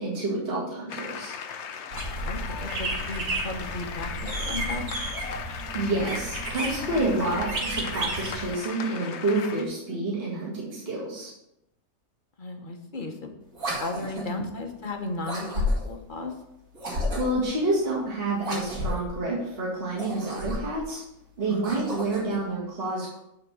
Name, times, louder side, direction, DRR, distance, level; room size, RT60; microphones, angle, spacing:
voice 1, 0.0-1.3 5.7-11.3 14.3-14.4 17.2-21.0 21.4-23.2, right 2 dB, 45° right, -6 dB, 2.3 m, -28 dB
sound 1, 0.9-9.7, left 7 dB, 60° left, 0.9 m, -37 dB
sound 2, 1.9-8.5, right 2 dB, 60° right, 1.8 m, -33 dB
voice 2, 2.2-4.9 12.4-13.3 13.8-16.3 21.5-21.7, left 2 dB, 40° left, 4 dB, 1.1 m, -35 dB
sound 3, 13.5-14.4 15.2-16.0 16.7-17.5 18.4-19.1 19.9-20.8 21.5-22.4, left 1 dB, 90° right, 2.7 m, -31 dB
9.5 x 4.0 x 6.1 m, 0.83 s
omnidirectional pair, 1.5 m